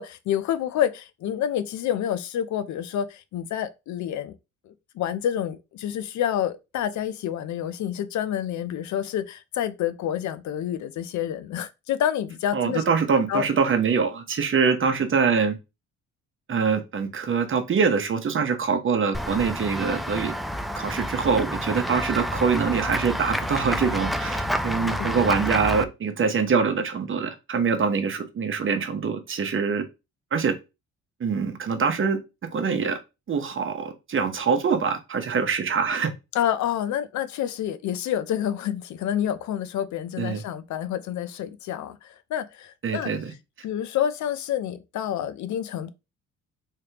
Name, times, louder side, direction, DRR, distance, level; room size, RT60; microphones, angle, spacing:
voice 1, 0.0-4.3 4.7-12.8 13.3-13.5 24.9-25.1 36.3-43.1 43.6-45.9, left 10 dB, 70° left, 0.5 m, -28 dB
voice 2, 12.5-15.6 16.5-20.3 20.7-29.8 30.3-30.5 31.2-32.2 32.5-33.0 33.3-36.1 40.2-40.4 42.8-43.3, right 5 dB, 40° right, 0.9 m, -24 dB
Run / Walk footsteps / Bell, 19.1-25.9, equal, ahead, 0.3 m, -29 dB
3.3 x 3.2 x 2.9 m
cardioid pair, 90°, 30 cm